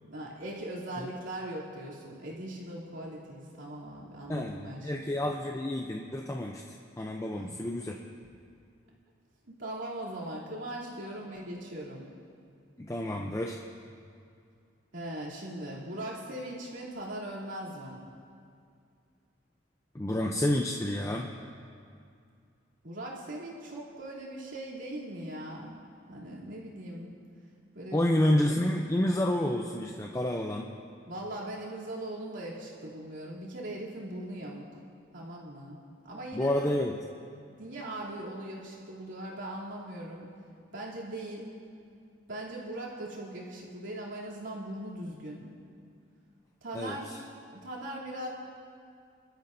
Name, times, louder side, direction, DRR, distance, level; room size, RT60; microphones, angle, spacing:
voice 1, 0.0-5.3 7.3-7.5 9.5-12.1 14.9-18.0 22.8-25.8 26.1-27.1 27.7-28.0 31.1-34.7 35.1-35.8 36.0-36.8 37.5-40.3 40.7-41.5 42.3-45.5 46.6-48.3, right 1 dB, 75° right, -6 dB, 2.9 m, -40 dB
voice 2, 4.3-8.0 12.8-13.6 19.9-21.3 27.9-30.7 36.3-37.0 46.7-47.0, left 1 dB, 15° left, 1 dB, 0.5 m, -29 dB
23.5 x 12.5 x 2.6 m, 2.4 s
head